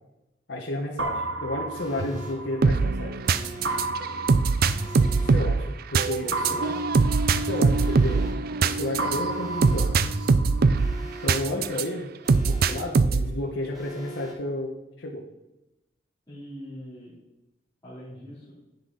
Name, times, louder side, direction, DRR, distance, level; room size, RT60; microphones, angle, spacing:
voice 1, 0.5-3.2 5.2-6.7 7.3-8.2 8.6-9.9 11.2-12.1 12.5-14.7 15.0-15.2, left 1 dB, 75° left, -2 dB, 1.3 m, -32 dB
sound 1, 1.0-3.1 3.6-5.7 6.3-8.6 9.0-11.1, right 2 dB, 70° right, 1.1 m, -33 dB
Alarm, 1.7-2.3 3.2-3.8 4.7-5.3 6.2-6.8 7.7-8.3 9.2-9.8 10.7-11.3 12.2-12.8 13.7-14.3, right 2 dB, ahead, 3.8 m, -42 dB
hip hop liquid, 2.6-11.8 12.3-13.4, right 4 dB, 55° right, 0.5 m, -22 dB
voice 2, 6.5-7.0 8.1-8.3 16.3-17.2 17.8-18.5, equal, 20° left, -12 dB, 3.3 m, -42 dB
10.5 x 8.2 x 4.0 m, 0.94 s
head